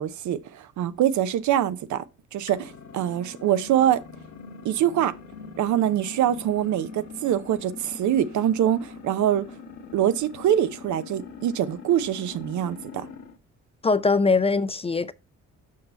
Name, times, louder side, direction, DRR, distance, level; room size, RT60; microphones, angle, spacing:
voice 1, 0.0-2.0 2.3-4.0 4.6-5.1 5.6-9.4 9.9-13.1, right 11 dB, 75° right, 0.7 m, -24 dB
sound 1, 2.5-13.4, left 5 dB, 65° left, 1.5 m, -43 dB
voice 2, 13.8-15.1, left 4 dB, 20° left, 0.4 m, -21 dB
6.5 x 5.5 x 4.4 m
cardioid pair, 90°, 30 cm